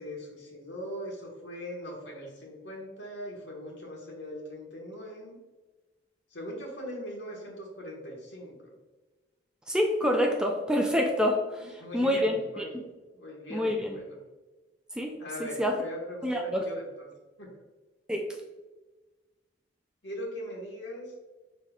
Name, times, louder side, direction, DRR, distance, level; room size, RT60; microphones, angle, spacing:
voice 1, 0.0-5.4 6.3-8.5 11.8-12.7 13.1-14.2 15.2-17.1 17.4-17.5 20.0-21.1, equal, 75° left, -1 dB, 1.4 m, -40 dB
voice 2, 9.7-12.8 13.5-14.0 15.0-15.1 15.4-15.8 16.2-16.6 18.1-18.3, equal, 5° right, 1 dB, 0.4 m, -27 dB
5.1 x 4.3 x 2.4 m, 1.2 s
head